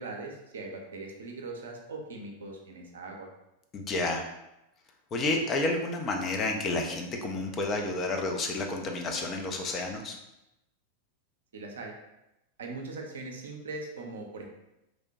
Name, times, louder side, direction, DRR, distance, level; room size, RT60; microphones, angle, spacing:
voice 1, 0.0-3.3 11.5-11.9 12.6-14.5, right 3 dB, 65° right, 2 dB, 0.4 m, -40 dB
voice 2, 3.7-4.2 5.1-10.2, left 2 dB, 25° left, 2 dB, 0.4 m, -30 dB
3.0 x 2.1 x 2.6 m, 0.90 s
figure-of-eight pair, 90°, 0 cm